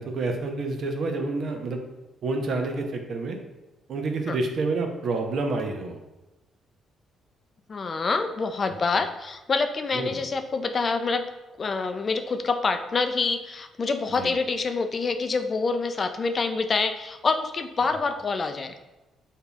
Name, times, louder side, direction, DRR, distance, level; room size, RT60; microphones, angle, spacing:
voice 1, 0.0-1.8 2.2-3.4 3.9-6.0 9.9-10.3 14.1-14.3, right 3 dB, 60° right, 3 dB, 0.6 m, -28 dB
voice 2, 7.7-11.3 11.6-18.7, left 4 dB, 40° left, 7 dB, 0.3 m, -26 dB
6.6 x 2.7 x 2.3 m, 1.0 s
cardioid pair, 90°, 0 cm